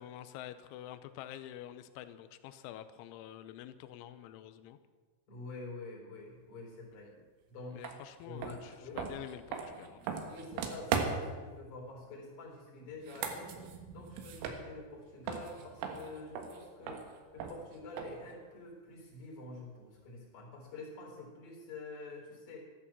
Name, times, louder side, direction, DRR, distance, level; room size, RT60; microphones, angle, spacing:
voice 1, 0.0-4.8 7.1-7.2 7.7-10.0, left 11 dB, 85° left, 11 dB, 3.1 m, -47 dB
voice 2, 5.3-7.1 7.5-8.0 8.3-9.0 10.2-13.5 13.9-17.0 17.3-22.6, left 3 dB, 40° left, 0 dB, 5.0 m, -47 dB
sound 1, 7.8-8.0 8.4-11.4 12.9-15.0 15.3-18.3, right 6 dB, 85° right, 4.1 m, -38 dB
14.0 x 12.5 x 7.3 m, 1.4 s
omnidirectional pair, 5.6 m